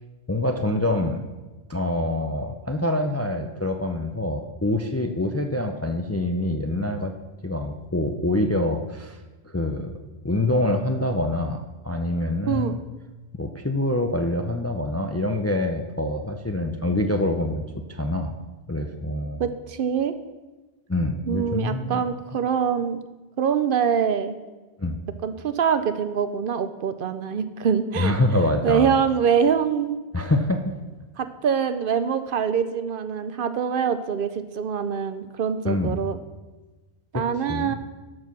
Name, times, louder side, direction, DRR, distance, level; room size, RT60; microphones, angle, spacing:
voice 1, 0.3-1.2 1.7-7.1 7.4-9.2 9.4-9.9 10.2-12.8 13.4-17.6 18.0-18.3 18.7-19.5 20.9-22.0 24.8-25.0 28.0-28.9 30.1-30.7 35.6-36.0 37.1-37.2 37.5-37.8, left 1 dB, 20° left, 6 dB, 0.4 m, -25 dB
voice 2, 19.4-20.1 21.3-23.0 23.4-24.3 25.2-28.1 28.6-30.0 31.2-36.2 37.1-37.8, right 7 dB, 60° right, 11 dB, 0.7 m, -24 dB
12.0 x 4.7 x 6.0 m, 1.2 s
omnidirectional pair, 1.1 m